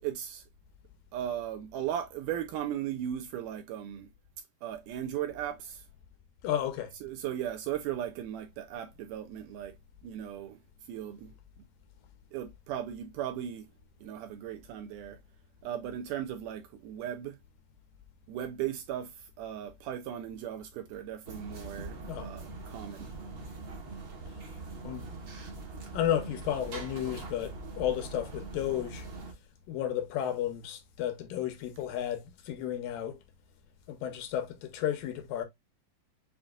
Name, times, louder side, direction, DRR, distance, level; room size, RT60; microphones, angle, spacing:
voice 1, 0.0-0.4 1.1-4.1 4.6-5.8 7.0-9.8 10.0-10.6 10.9-11.3 12.3-13.7 14.0-15.2 15.6-17.4 18.3-23.1, right 10 dB, 80° right, 1.9 m, -37 dB
voice 2, 6.4-6.9 22.1-22.3 24.8-25.1 25.9-29.1 29.7-33.2 33.9-35.4, left 11 dB, 80° left, 2.5 m, -33 dB
sound 1, 21.2-29.3, right 3 dB, 55° right, 1.4 m, -42 dB
6.9 x 2.7 x 2.3 m
omnidirectional pair, 4.0 m